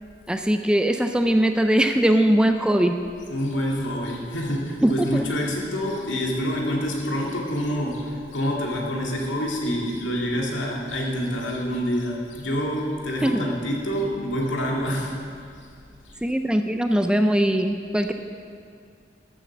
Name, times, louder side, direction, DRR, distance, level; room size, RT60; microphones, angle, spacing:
voice 1, 0.3-3.0 4.8-5.3 13.2-13.4 16.2-18.1, right 1 dB, 5° right, 6 dB, 0.4 m, -21 dB
voice 2, 3.3-15.1 15.5-15.7 16.0-16.2, equal, 80° left, -1 dB, 2.2 m, -27 dB
12.5 x 7.7 x 7.3 m, 2.3 s
head